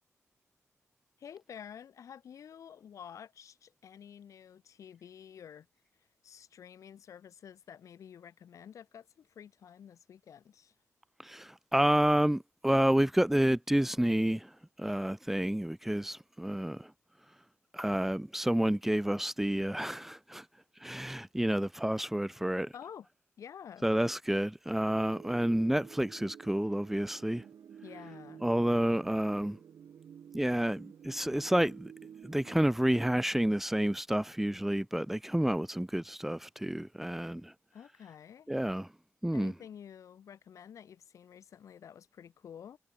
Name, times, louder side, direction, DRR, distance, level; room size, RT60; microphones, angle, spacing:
voice 1, 1.2-5.7 6.2-10.7 22.7-23.1 23.4-23.9 27.8-28.4 37.7-38.5 39.3-42.8, left 8 dB, 70° left, 6.2 m, -50 dB
voice 2, 11.2-14.5 14.8-16.9 17.7-20.4 20.8-22.7 23.8-27.4 28.4-29.6 30.3-31.9 32.2-37.5 38.5-38.9 39.2-39.5, right 1 dB, 5° right, 1.0 m, -29 dB
sound 1, 24.9-32.6, right 8 dB, 65° right, 4.5 m, -51 dB
wide cardioid pair, 160°, 6 cm